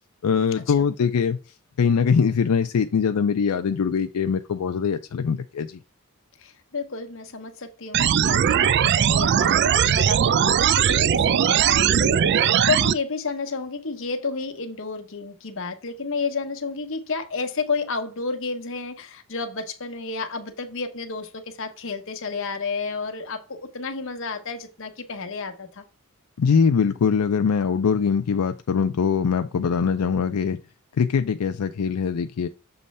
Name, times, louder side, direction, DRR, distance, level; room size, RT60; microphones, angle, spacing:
voice 1, 0.2-1.4 1.8-5.8 26.4-30.6 31.0-32.5, left 6 dB, 90° left, 0.4 m, -22 dB
voice 2, 6.4-25.8, left 4 dB, 60° left, 1.0 m, -31 dB
sound 1, 7.9-12.9, right 8 dB, 50° right, 0.3 m, -19 dB
6.8 x 3.2 x 5.4 m
head